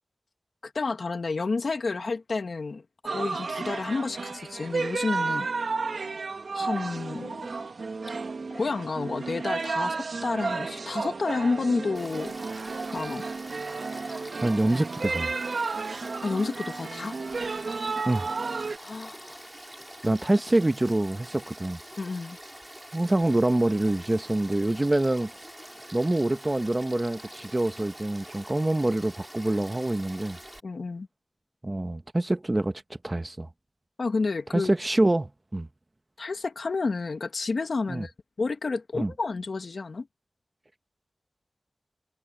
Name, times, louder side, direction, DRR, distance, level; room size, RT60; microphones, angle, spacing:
voice 1, 0.6-2.8 3.1-5.5 6.5-7.5 8.5-12.4 12.9-13.2 16.2-17.2 18.8-19.4 22.0-22.4 30.6-31.1 34.0-34.7 36.2-38.1 38.4-40.1, left 4 dB, 80° left, 1.9 m, -30 dB
sound 1, 3.0-18.8, right 4 dB, 85° right, 1.9 m, -32 dB
Frog / Stream, 12.0-30.6, right 1 dB, 10° right, 3.5 m, -45 dB
voice 2, 14.4-15.3 18.0-18.3 20.0-21.8 22.9-25.3 25.9-30.4 31.6-32.7 33.0-33.5 34.5-35.7 37.9-38.0 38.9-39.1, right 1 dB, 30° right, 1.2 m, -25 dB
wide cardioid pair, 70°, 0 cm